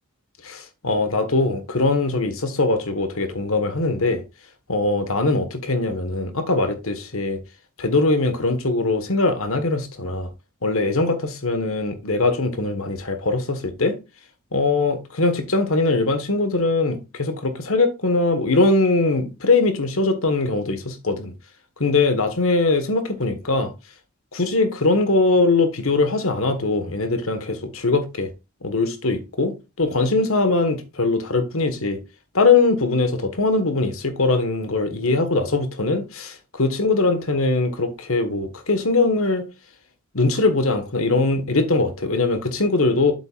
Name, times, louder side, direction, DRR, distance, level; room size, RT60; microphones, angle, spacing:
voice 1, 0.4-4.2 4.7-7.4 7.8-10.3 10.6-13.9 14.5-21.3 21.8-23.7 24.3-28.3 28.6-32.0 32.3-39.5 40.1-43.1, left 3 dB, 70° left, 1.5 m, -21 dB
7.7 x 7.5 x 2.5 m
head